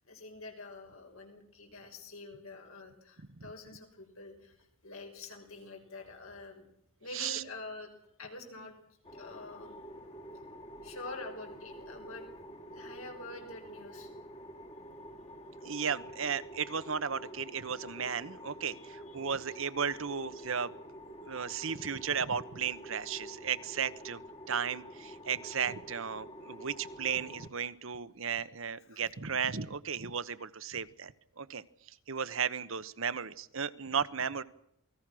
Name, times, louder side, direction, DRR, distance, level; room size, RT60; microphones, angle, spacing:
voice 1, 0.0-6.7 7.0-7.9 8.2-8.8 9.1-9.8 10.8-12.3 12.7-14.1 18.0-18.1 18.7-19.4 20.4-20.5 21.3-21.4 28.9-29.0, left 3 dB, 80° left, 3 dB, 6.2 m, -47 dB
sound 1, 9.0-27.5, equal, 30° left, 2.0 m, -48 dB
voice 2, 15.6-20.7 21.2-24.2 24.5-31.1 31.4-31.6 32.1-34.4, right 6 dB, 65° right, 14 dB, 1.1 m, -35 dB
28.5 x 19.5 x 6.3 m, 0.75 s
head